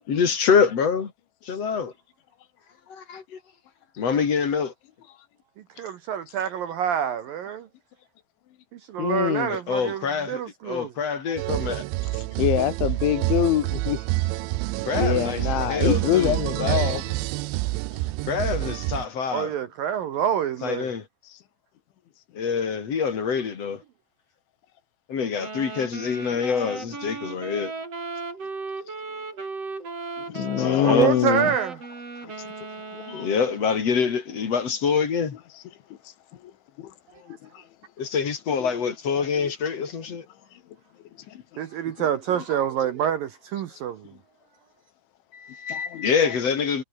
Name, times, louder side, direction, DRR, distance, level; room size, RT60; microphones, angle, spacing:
voice 1, 0.1-1.1 1.4-1.9 2.9-3.4 4.0-4.7 9.5-11.8 14.9-16.9 18.3-19.5 20.6-21.0 22.3-23.8 25.1-27.7 30.5-31.1 33.1-35.4 38.0-40.2 45.3-46.8, left 6 dB, 40° left, 3.1 m, -26 dB
voice 2, 5.8-7.7 8.7-10.9 19.3-20.9 30.8-31.8 41.6-44.1, right 9 dB, 65° right, 2.4 m, -27 dB
voice 3, 9.0-9.5 12.4-14.0 14.9-17.2 30.3-31.5 32.9-33.3 36.8-36.9 37.3-37.6 38.6-38.7 41.3-41.4 42.0-42.1 45.7-46.0, left 12 dB, 80° left, 4.1 m, -25 dB
sound 1, 11.4-19.1, right 20 dB, 90° right, 3.0 m, -27 dB
Wind instrument woodwind instrument, 25.4-33.9, right 3 dB, 30° right, 6.5 m, -36 dB
omnidirectional pair, 5.3 m